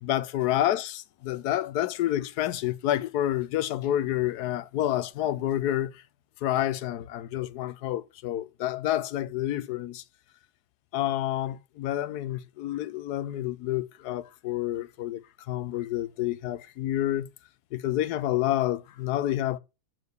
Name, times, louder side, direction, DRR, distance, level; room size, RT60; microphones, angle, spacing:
voice 1, 0.0-5.9 6.4-10.0 10.9-17.3 17.7-19.6, left 13 dB, 85° left, 1.2 m, -29 dB
8.1 x 4.6 x 6.4 m
omnidirectional pair, 1.7 m